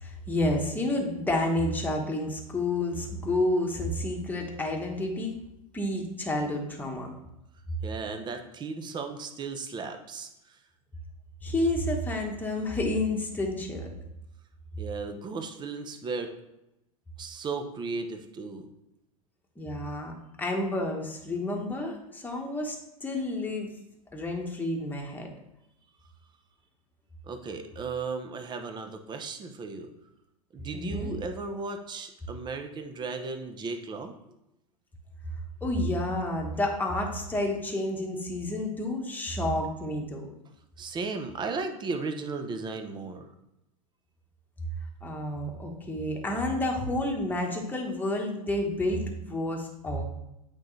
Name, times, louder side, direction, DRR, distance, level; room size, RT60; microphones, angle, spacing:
voice 1, 0.0-5.3 5.7-7.1 11.4-13.9 19.6-20.1 20.4-22.8 23.0-23.7 24.1-25.3 30.7-31.1 35.6-40.3 45.0-50.0, left 1 dB, 10° left, 0 dB, 1.3 m, -30 dB
voice 2, 7.8-10.6 14.8-16.3 17.2-18.7 27.3-29.9 30.5-34.1 40.8-43.3, right 4 dB, 25° right, 6 dB, 0.8 m, -35 dB
8.5 x 3.9 x 3.2 m, 0.88 s
hypercardioid pair, 110°, 19 cm